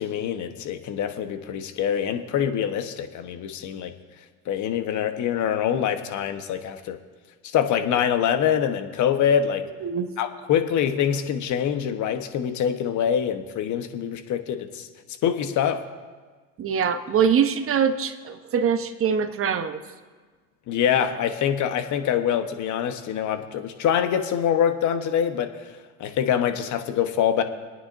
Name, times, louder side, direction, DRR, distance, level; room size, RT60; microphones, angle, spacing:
voice 1, 0.0-3.9 4.5-7.0 7.4-9.6 10.2-14.9 15.2-15.8 20.7-25.5 26.0-27.4, left 9 dB, 45° left, 8 dB, 1.3 m, -24 dB
voice 2, 16.6-19.8, right 7 dB, 35° right, 8 dB, 1.1 m, -23 dB
26.0 x 9.5 x 2.7 m, 1.4 s
hypercardioid pair, 90°, 40 cm